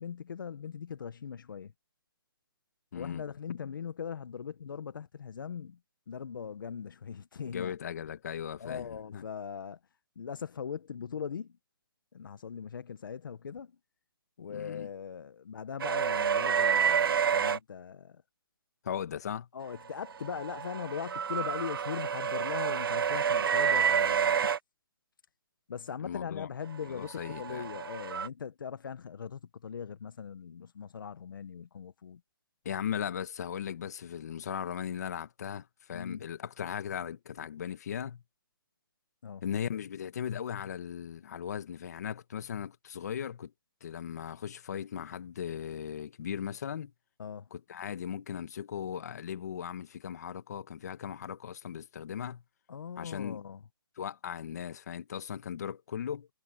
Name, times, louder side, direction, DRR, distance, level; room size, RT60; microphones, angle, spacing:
voice 1, 0.0-1.7 2.9-5.8 6.1-7.7 8.6-9.8 10.1-11.6 12.1-13.7 14.4-18.2 19.5-24.4 25.7-32.2 35.9-36.2 39.2-39.4 47.2-47.5 52.7-53.6, left 7 dB, 60° left, 1.3 m, -40 dB
voice 2, 2.9-3.2 7.4-9.2 14.5-14.9 18.8-19.5 26.0-26.5 26.9-27.6 32.7-38.2 39.4-43.5 43.8-46.9 47.5-52.4 53.0-53.4 54.0-56.3, left 8 dB, 45° left, 1.9 m, -38 dB
sound 1, 15.8-17.6 20.0-24.6 27.0-28.3, right 7 dB, 70° right, 0.4 m, -28 dB
hypercardioid pair, 170°, 12 cm